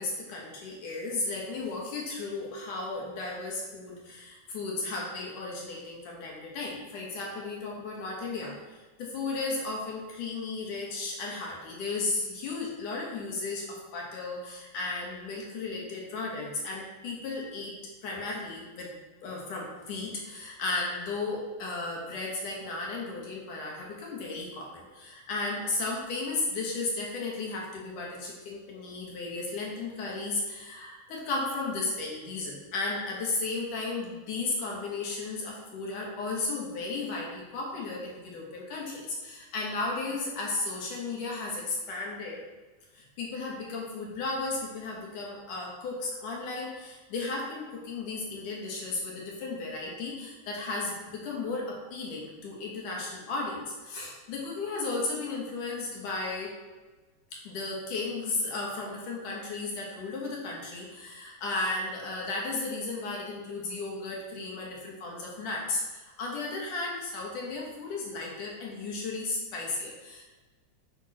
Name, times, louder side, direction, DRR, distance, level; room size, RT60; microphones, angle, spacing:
voice 1, 0.0-17.8 18.0-19.0 19.2-42.4 42.9-56.5 57.3-70.2, left 3 dB, 80° left, -3 dB, 3.4 m, -34 dB
7.5 x 5.8 x 5.9 m, 1.3 s
omnidirectional pair, 3.5 m